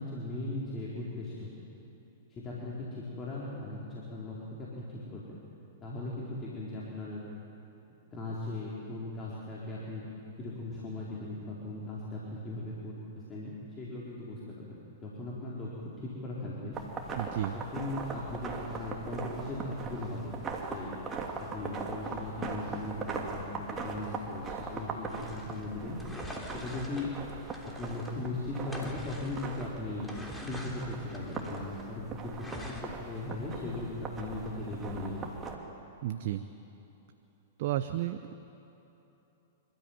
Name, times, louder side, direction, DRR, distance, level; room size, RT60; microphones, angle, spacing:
voice 1, 0.0-1.5 2.3-3.8 4.1-5.2 5.8-7.2 8.1-10.0 10.4-16.8 17.5-20.4 20.6-20.9 21.4-26.0 26.5-27.2 27.6-30.1 30.4-35.3, left 2 dB, 25° left, -6 dB, 4.2 m, -38 dB
sound 1, 16.7-35.6, right 4 dB, 25° right, 2.8 m, -40 dB
voice 2, 17.2-17.6 36.0-36.5 37.6-38.3, right 13 dB, 55° right, 10 dB, 0.8 m, -32 dB
sound 2, 25.1-28.2 28.6-31.9 32.3-32.8, equal, 5° left, 3.4 m, -45 dB
28.0 x 13.5 x 9.3 m, 2.9 s
hypercardioid pair, 105°, 0 cm